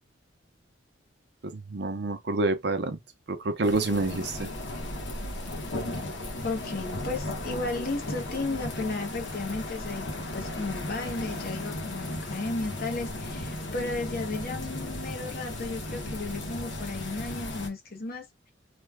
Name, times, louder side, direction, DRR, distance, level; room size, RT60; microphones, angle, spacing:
voice 1, 1.4-3.0 3.3-4.5, right 2 dB, 60° right, 0.7 m, -28 dB
sound 1, 3.6-17.7, left 1 dB, 75° left, 1.2 m, -35 dB
voice 2, 6.4-18.5, left 3 dB, 50° left, 0.9 m, -34 dB
3.2 x 2.3 x 3.4 m
head